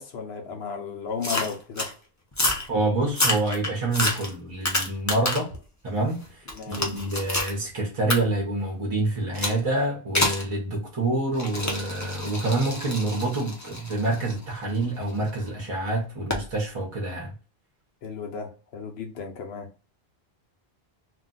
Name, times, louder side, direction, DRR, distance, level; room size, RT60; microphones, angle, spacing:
voice 1, 0.0-1.9 2.5-2.6 6.5-6.8 18.0-19.7, left 5 dB, 80° left, 0.9 m, -34 dB
sound 1, 1.2-1.9 2.3-2.7 3.1-5.6 6.0-7.5 8.1-8.2 9.3-9.6 10.1-10.5 11.3-15.3 16.3-16.5, left 2 dB, 20° left, 0.5 m, -28 dB
voice 2, 2.7-5.5 5.8-17.3, right 2 dB, 35° right, 0.7 m, -27 dB
2.5 x 2.2 x 3.8 m
omnidirectional pair, 1.0 m